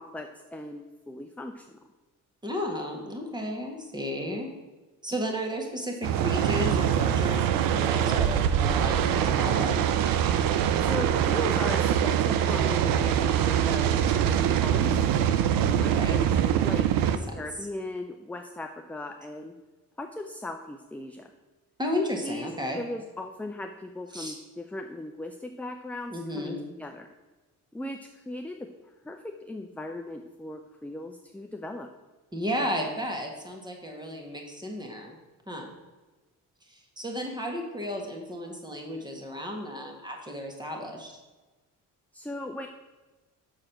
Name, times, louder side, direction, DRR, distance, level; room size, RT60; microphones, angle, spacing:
voice 1, 0.0-1.7 10.8-16.9 17.4-19.5 20.0-21.3 22.2-27.1 27.7-31.9 42.1-42.7, left 2 dB, 5° left, 4 dB, 0.4 m, -38 dB
voice 2, 2.4-4.5 5.0-9.7 15.8-16.2 17.0-17.4 21.8-22.8 24.1-24.4 26.1-26.6 32.3-35.1 35.5-35.7 36.7-41.1, equal, 10° right, 1 dB, 1.6 m, -33 dB
sound 1, 6.0-17.2, right 9 dB, 75° right, 0.6 m, -24 dB
6.4 x 4.9 x 5.8 m, 1.2 s
cardioid pair, 90°, 34 cm